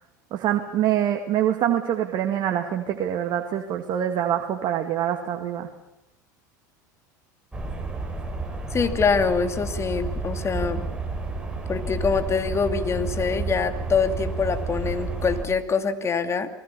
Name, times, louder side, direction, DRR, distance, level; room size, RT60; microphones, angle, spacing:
voice 1, 0.3-5.7, right 10 dB, 50° right, 5 dB, 2.2 m, -25 dB
sound 1, 7.5-15.4, right 3 dB, 10° right, 5.5 m, -31 dB
voice 2, 8.7-10.8 11.7-16.5, left 5 dB, 25° left, 8 dB, 2.6 m, -24 dB
28.5 x 20.5 x 7.0 m, 0.85 s
hypercardioid pair, 90°, 10 cm